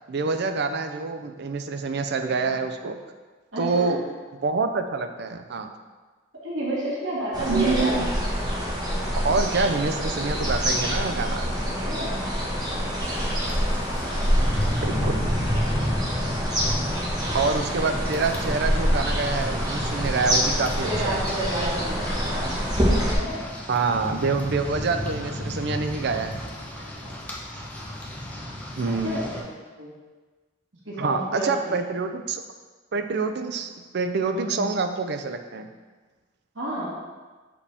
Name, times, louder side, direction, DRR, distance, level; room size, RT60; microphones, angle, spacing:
voice 1, 0.1-3.0 3.6-4.0 4.4-5.7 7.5-8.1 9.2-11.5 14.8-15.2 17.3-21.2 23.7-26.4 28.8-29.2 31.0-32.4 32.9-35.7, right 4 dB, 60° right, 7 dB, 0.5 m, -26 dB
voice 2, 3.5-4.0 6.4-8.0 11.7-12.4 12.7-13.1 13.6-13.7 20.8-22.6 23.0-23.5 27.0-27.1 28.9-29.9 30.9-31.8 34.3-34.7 36.6-36.9, right 1 dB, 90° right, -6 dB, 1.9 m, -31 dB
sound 1, 7.3-23.1, equal, 20° right, 1.3 m, -26 dB
Rain, 13.1-29.4, equal, 10° left, 0.9 m, -33 dB
6.8 x 5.0 x 3.4 m, 1.3 s
head